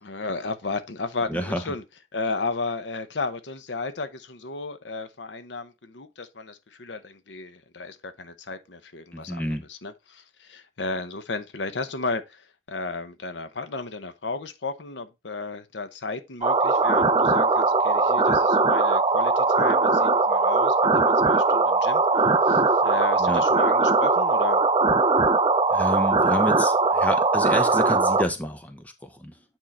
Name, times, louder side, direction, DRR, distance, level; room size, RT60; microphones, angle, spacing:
voice 1, 0.0-1.8 2.1-24.6, left 3 dB, 85° left, 0.8 m, -34 dB
voice 2, 1.3-1.6 9.1-9.6 23.2-23.4 25.7-28.8 29.2-29.3, equal, 10° left, 0.8 m, -29 dB
sound 1, 16.4-28.2, right 3 dB, 25° right, 0.5 m, -20 dB
9.0 x 3.7 x 4.2 m
head